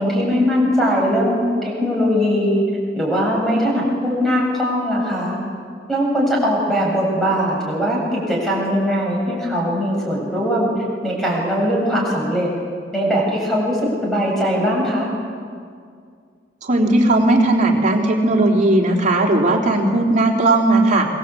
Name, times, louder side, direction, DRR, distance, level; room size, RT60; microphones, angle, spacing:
voice 1, 0.0-2.6 3.0-5.4 5.9-10.7 11.0-12.5 12.9-15.1, equal, ahead, -3 dB, 7.5 m, -20 dB
voice 2, 16.6-21.1, right 2 dB, 45° right, 0 dB, 3.6 m, -16 dB
26.0 x 22.0 x 8.5 m, 2.2 s
head